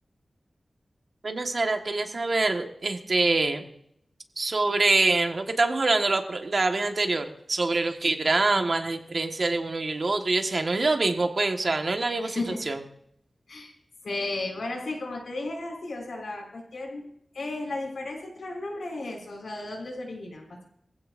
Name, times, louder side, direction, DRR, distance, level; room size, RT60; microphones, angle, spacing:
voice 1, 1.2-3.6 4.4-12.3 12.7-12.8, right 3 dB, 50° right, 4 dB, 1.5 m, -25 dB
voice 2, 12.2-12.6 13.5-13.7 14.0-17.0 17.3-20.6, left 2 dB, 85° left, 0 dB, 6.1 m, -34 dB
23.0 x 16.0 x 2.6 m, 0.73 s
wide cardioid pair, 100°, 0 cm